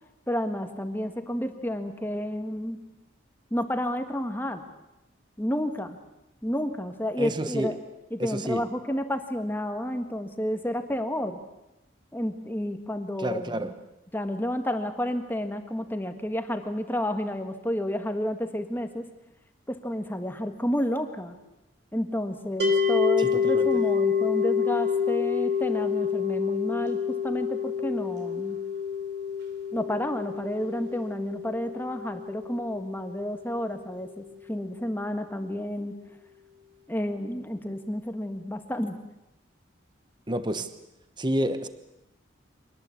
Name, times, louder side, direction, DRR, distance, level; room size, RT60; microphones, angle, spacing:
voice 1, 0.3-2.8 3.5-4.6 5.4-6.0 6.4-7.8 8.1-11.4 12.1-13.7 14.1-19.1 19.7-21.3 21.9-28.6 29.7-35.9 36.9-39.0, equal, 10° left, 7 dB, 1.6 m, -30 dB
voice 2, 7.2-7.8 8.2-8.6 13.2-13.8 23.2-23.8 40.3-40.7 41.2-41.7, right 1 dB, 20° right, 11 dB, 1.1 m, -30 dB
sound 1, 22.6-33.8, left 6 dB, 55° right, 3.3 m, -28 dB
25.0 x 19.5 x 8.4 m, 0.92 s
head